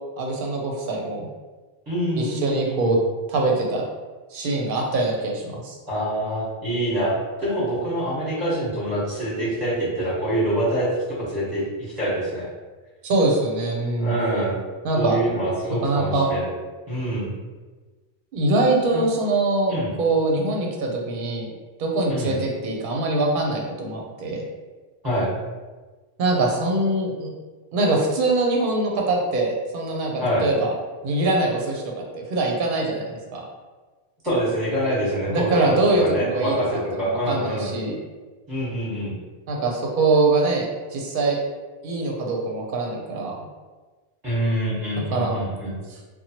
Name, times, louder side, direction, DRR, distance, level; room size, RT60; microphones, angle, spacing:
voice 1, 0.2-1.2 2.2-3.0 3.3-3.8 4.3-5.8 13.0-14.1 14.8-15.2 15.8-16.3 18.3-21.5 21.8-24.4 26.2-27.3 27.7-30.7 31.0-33.5 35.3-36.6 37.1-38.0 39.5-40.7 40.9-41.4 41.8-43.4 45.1-45.4 45.9-46.0, right 2 dB, 60° right, 0 dB, 0.7 m, -23 dB
voice 2, 1.9-2.9 5.9-12.5 14.0-14.6 14.9-16.5 16.9-17.3 18.9-19.0 19.7-19.9 22.1-22.4 25.0-25.3 30.2-30.5 34.2-37.7 38.5-39.1 44.2-45.7, right 1 dB, 20° right, -10 dB, 1.0 m, -25 dB
2.9 x 2.2 x 2.8 m, 1.3 s
omnidirectional pair, 1.1 m